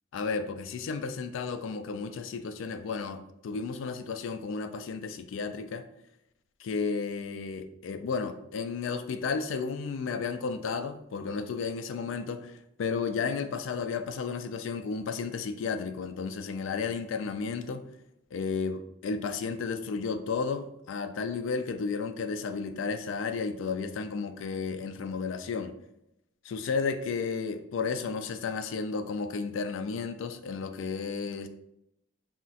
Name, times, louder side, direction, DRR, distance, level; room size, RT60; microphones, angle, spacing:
voice 1, 0.1-5.8 6.6-17.9 18.3-25.7 26.4-31.5, left 5 dB, 70° left, 9 dB, 0.3 m, -33 dB
2.4 x 2.1 x 3.9 m, 0.82 s
head